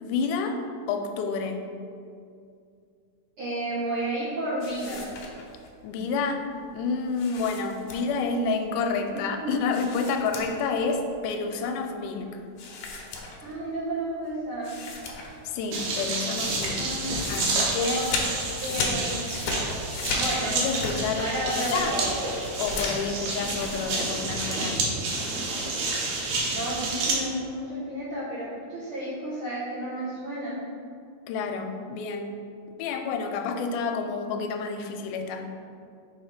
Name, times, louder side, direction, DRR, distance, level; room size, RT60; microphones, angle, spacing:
voice 1, 0.0-0.6 0.9-1.6 5.8-6.4 6.7-12.4 15.4-16.9 17.3-18.0 18.8-19.0 20.5-21.3 21.6-22.0 22.6-24.8 31.3-32.4 32.8-35.5, left 4 dB, 85° left, 5 dB, 2.1 m, -29 dB
voice 2, 3.4-5.0 9.1-9.5 13.4-14.8 16.7-17.2 17.9-18.1 18.6-19.3 20.1-20.6 21.1-22.1 26.5-30.6, right 1 dB, 60° right, -10 dB, 1.6 m, -32 dB
sound 1, 4.6-5.7 7.1-8.3 9.7-10.8 11.1-11.2 12.6-13.7 14.2-14.3 14.6-15.5 15.7-23.9, left 3 dB, 70° left, 1.6 m, -35 dB
sound 2, 15.7-27.1, right 3 dB, 90° right, 2.5 m, -29 dB
5.9 x 3.4 x 4.8 m, 2.4 s
omnidirectional pair, 3.6 m